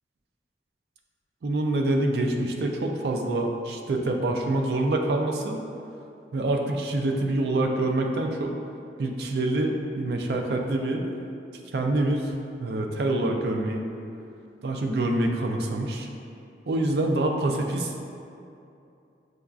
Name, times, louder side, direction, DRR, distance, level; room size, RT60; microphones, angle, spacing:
voice 1, 1.4-5.6 6.3-8.5 9.0-11.0 11.7-12.3 12.6-13.8 14.6-16.1 16.7-18.0, right 2 dB, 70° right, 2 dB, 0.4 m, -26 dB
6.5 x 2.3 x 2.3 m, 2.6 s
head